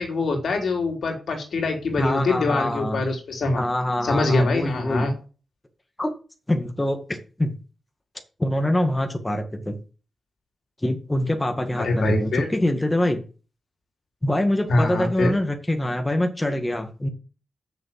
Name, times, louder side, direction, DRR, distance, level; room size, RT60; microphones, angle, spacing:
voice 1, 0.0-3.6 4.0-5.1 11.8-12.5 14.7-15.3, left 2 dB, 75° left, 3 dB, 3.6 m, -24 dB
voice 2, 2.0-3.0 3.6-5.1 6.0-6.1 6.5-7.5 8.4-9.8 10.8-13.2 14.2-17.1, left 1 dB, 15° left, 5 dB, 1.9 m, -24 dB
7.2 x 6.6 x 7.6 m, 0.35 s
cardioid pair, 85°, 0 cm